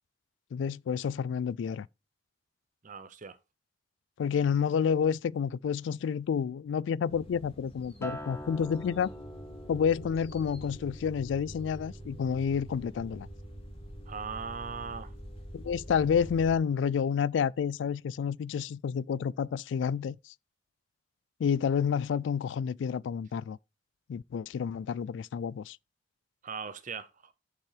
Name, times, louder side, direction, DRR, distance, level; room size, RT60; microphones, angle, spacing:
voice 1, 0.5-1.9 4.2-9.1 9.7-13.3 15.5-20.3 21.4-23.6 24.1-25.8, left 7 dB, 75° left, 0.3 m, -29 dB
voice 2, 2.8-3.4 14.1-15.1 26.4-27.3, right 6 dB, 45° right, 0.7 m, -39 dB
sound 1, 7.1-16.5, equal, 35° left, 2.2 m, -46 dB
Acoustic guitar, 8.0-12.4 12.8-13.2, equal, 15° left, 0.9 m, -45 dB
7.1 x 5.5 x 4.8 m
head